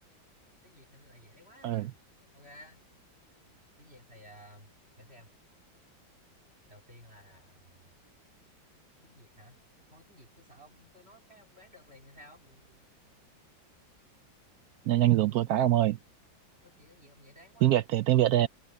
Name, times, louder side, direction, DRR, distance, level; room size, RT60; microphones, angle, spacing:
voice 1, 0.6-2.0 2.3-2.8 3.8-4.7 5.0-5.3 6.7-7.9 9.0-9.6 9.9-12.9 16.6-17.8, equal, 30° right, 4.2 m, -55 dB
voice 2, 14.9-16.0 17.6-18.5, right 13 dB, 75° right, 0.8 m, -24 dB
omnidirectional pair, 2.1 m